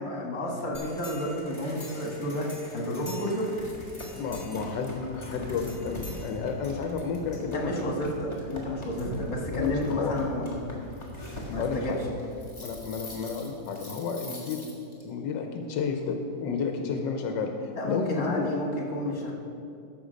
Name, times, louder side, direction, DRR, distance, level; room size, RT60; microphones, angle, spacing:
voice 1, 0.0-3.6 7.4-10.6 11.5-11.9 17.7-19.3, left 1 dB, 55° left, -1 dB, 2.0 m, -31 dB
sound 1, 0.7-15.0, equal, 15° left, 1.5 m, -41 dB
voice 2, 4.1-7.8 9.5-10.2 11.6-12.0 12.6-14.6 15.0-18.5, left 5 dB, 85° left, 4 dB, 1.4 m, -31 dB
13.0 x 5.7 x 5.1 m, 2.6 s
omnidirectional pair, 1.9 m